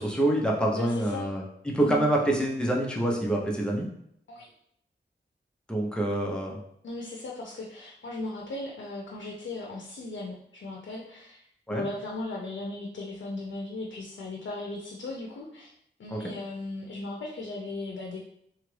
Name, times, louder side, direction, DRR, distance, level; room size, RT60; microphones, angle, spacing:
voice 1, 0.0-3.9 5.7-6.6 11.7-11.8 16.1-16.2, right 1 dB, 5° left, -2 dB, 0.6 m, -26 dB
voice 2, 0.7-1.3 1.8-2.0 4.3-4.5 6.8-15.7 16.0-18.2, left 2 dB, 85° left, -2 dB, 0.5 m, -37 dB
3.0 x 2.4 x 3.2 m, 0.71 s
wide cardioid pair, 90°, 19 cm